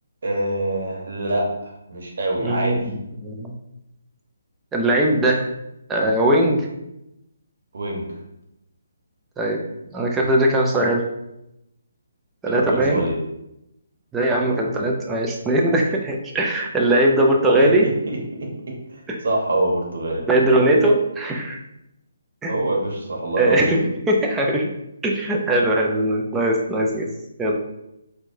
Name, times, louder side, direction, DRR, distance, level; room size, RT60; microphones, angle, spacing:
voice 1, 0.2-2.8 7.7-8.1 12.5-13.2 17.6-18.2 18.9-20.2 22.5-23.7, right 1 dB, 65° right, -1 dB, 1.0 m, -25 dB
voice 2, 2.4-2.8 3.2-3.5 4.7-5.4 5.9-6.6 9.4-9.6 9.9-11.0 12.4-13.0 14.1-17.9 20.3-21.6 22.4-22.5 23.4-24.7 25.0-27.1 27.4-27.5, right 1 dB, 10° right, -1 dB, 0.5 m, -20 dB
4.5 x 2.3 x 2.6 m, 0.85 s
hypercardioid pair, 155°, 0 cm